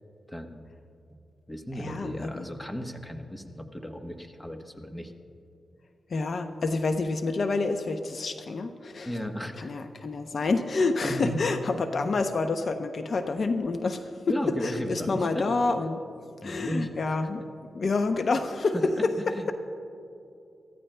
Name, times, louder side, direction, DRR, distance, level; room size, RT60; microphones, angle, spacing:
voice 1, 0.3-0.7 1.5-5.1 9.0-9.7 11.0-11.4 14.3-15.4 16.4-16.9 18.7-19.5, equal, 10° left, 5 dB, 1.0 m, -34 dB
voice 2, 1.8-2.5 6.1-9.1 9.6-14.4 14.6-16.0 16.4-17.4 17.7-19.5, left 3 dB, 60° left, 7 dB, 0.6 m, -28 dB
23.0 x 14.5 x 2.2 m, 2.7 s
cardioid pair, 85°, 0 cm